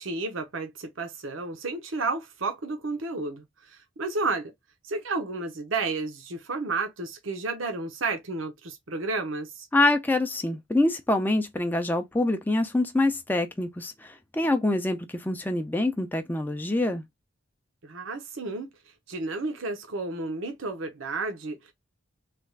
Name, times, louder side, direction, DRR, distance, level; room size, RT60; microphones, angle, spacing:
voice 1, 0.0-4.5 4.8-9.7 17.8-18.7 19.1-21.7, right 3 dB, 80° right, 0.8 m, -32 dB
voice 2, 9.7-17.0, left 2 dB, 10° left, 0.4 m, -25 dB
3.3 x 2.3 x 3.2 m
head